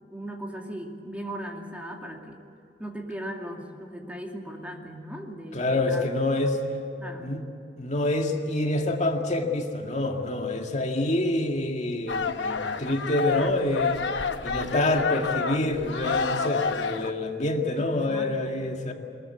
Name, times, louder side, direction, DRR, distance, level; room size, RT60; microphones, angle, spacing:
voice 1, 0.1-2.4 2.8-6.1 7.0-7.3 13.2-13.7 17.8-18.6, right 1 dB, 10° right, 1 dB, 2.4 m, -38 dB
voice 2, 5.5-6.6 7.2-7.4 7.8-14.0 14.4-18.9, left 2 dB, 40° left, 3 dB, 2.1 m, -27 dB
sound 1, 12.1-17.1, left 5 dB, 75° left, 1.0 m, -29 dB
22.5 x 21.5 x 8.2 m, 2.8 s
head